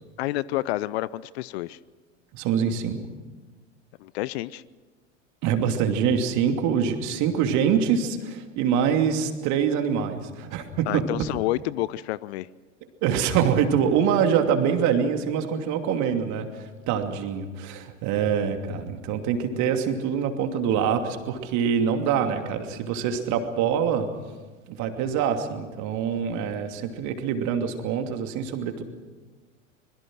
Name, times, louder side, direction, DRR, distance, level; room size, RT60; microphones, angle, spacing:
voice 1, 0.2-1.8 4.0-4.6 10.9-12.5, left 17 dB, 55° left, 20 dB, 0.7 m, -29 dB
voice 2, 2.3-3.0 5.4-11.1 13.0-24.1 24.7-28.8, right 7 dB, 50° right, 5 dB, 2.8 m, -25 dB
25.5 x 21.5 x 6.3 m, 1.3 s
figure-of-eight pair, 85°, 38 cm